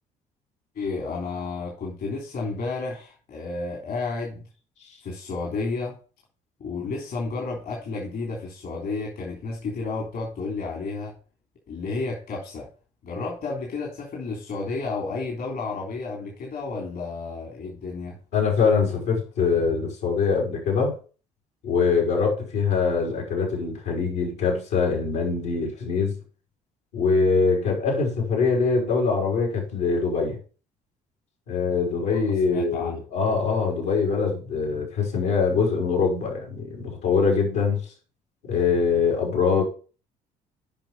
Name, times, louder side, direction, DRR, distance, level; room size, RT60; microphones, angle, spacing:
voice 1, 0.7-4.4 5.0-6.0 6.6-11.1 11.7-12.7 13.0-18.2 32.1-33.0, left 3 dB, 60° left, 0 dB, 3.3 m, -31 dB
voice 2, 18.3-21.0 21.6-26.1 26.9-30.4 31.5-37.8 38.5-39.6, left 5 dB, 80° left, -1 dB, 4.5 m, -23 dB
8.9 x 5.6 x 5.4 m, 0.37 s
supercardioid pair, 65°, 17 cm